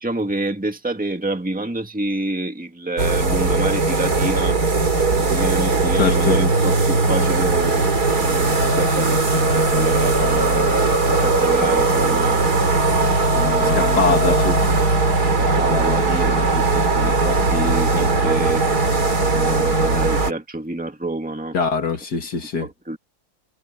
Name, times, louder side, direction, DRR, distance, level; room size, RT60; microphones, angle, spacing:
voice 1, 0.0-4.6 5.1-12.5 13.3-14.8 15.4-18.6 19.2-21.6 22.6-23.0, right 2 dB, 5° right, 1.8 m, -28 dB
sound 1, 3.0-20.3, right 3 dB, 70° right, 3.7 m, -19 dB
voice 2, 6.0-6.4 13.6-14.6 21.5-22.7, left 5 dB, 85° left, 2.8 m, -22 dB
omnidirectional pair, 1.7 m